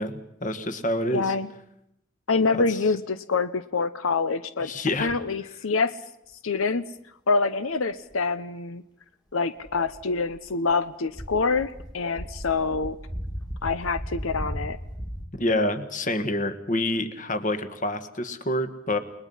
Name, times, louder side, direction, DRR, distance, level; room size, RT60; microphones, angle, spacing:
voice 1, 0.0-1.3 2.5-2.8 4.6-5.1 15.4-19.0, left 1 dB, 40° left, 9 dB, 1.7 m, -27 dB
voice 2, 1.1-1.5 2.3-4.7 5.0-6.0 6.4-6.9 7.3-8.8 9.3-13.0 13.6-14.8, left 4 dB, 90° left, 13 dB, 0.8 m, -26 dB
sound 1, 9.6-10.7 11.1-15.3, equal, 20° left, 2.3 m, -36 dB
30.0 x 20.5 x 5.6 m, 0.77 s
head